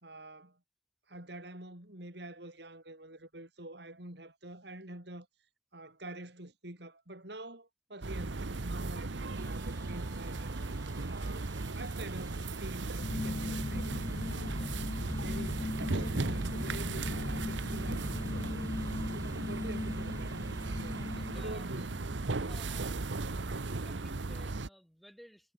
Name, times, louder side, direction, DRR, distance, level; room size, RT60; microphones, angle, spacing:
voice 1, 0.0-0.6 1.1-5.3 5.7-10.6 11.1-14.0 14.3-14.6 15.2-18.7 19.1-21.0 21.3-21.9, right 1 dB, 65° right, 4.7 m, -46 dB
sound 1, 8.0-24.7, right 3 dB, 80° right, 1.0 m, -36 dB
sound 2, 9.3-22.4, right 3 dB, 20° right, 3.6 m, -57 dB
sound 3, 13.0-22.5, left 2 dB, 25° left, 0.3 m, -39 dB
voice 2, 21.0-21.8 22.5-23.0 23.3-23.4 23.8-25.5, equal, ahead, 2.9 m, -57 dB
head